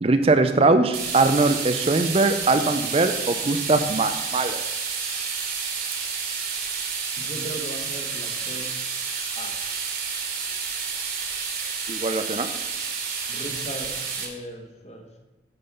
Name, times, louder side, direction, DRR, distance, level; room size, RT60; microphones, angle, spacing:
voice 1, 0.0-4.6 11.9-12.5, right 3 dB, 35° right, 8 dB, 0.5 m, -21 dB
sound 1, 0.9-14.3, right 5 dB, 55° right, 2.0 m, -30 dB
voice 2, 7.2-8.6 9.3-9.5 13.3-13.9 14.2-15.1, right 1 dB, 35° left, 3 dB, 1.5 m, -37 dB
9.5 x 5.4 x 6.9 m, 1.1 s
head